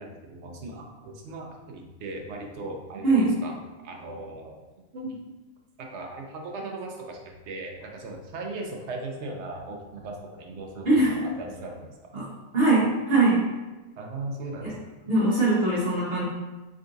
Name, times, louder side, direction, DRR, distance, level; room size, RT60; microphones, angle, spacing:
voice 1, 0.0-4.6 4.9-5.2 5.8-12.0 14.0-14.7, right 2 dB, 65° right, 1 dB, 0.8 m, -38 dB
voice 2, 10.8-11.2 12.1-12.2 12.5-13.4 14.6-14.7 15.0-16.2, right 2 dB, 45° right, -8 dB, 1.5 m, -21 dB
3.8 x 3.4 x 2.6 m, 1.2 s
omnidirectional pair, 1.5 m